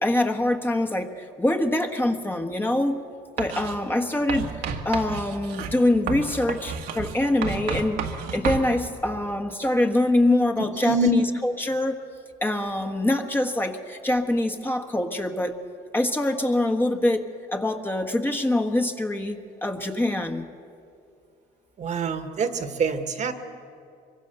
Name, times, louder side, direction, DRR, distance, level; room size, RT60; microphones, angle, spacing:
voice 1, 0.0-3.0 3.4-12.0 12.4-15.5 15.9-20.5, left 1 dB, 10° left, 4 dB, 1.4 m, -24 dB
Writing, 3.4-3.8 4.3-8.7, right 6 dB, 75° right, 1.9 m, -31 dB
voice 2, 21.8-23.3, right 5 dB, 45° right, 8 dB, 1.7 m, -25 dB
25.0 x 23.5 x 6.8 m, 2.4 s
cardioid pair, 110°, 17 cm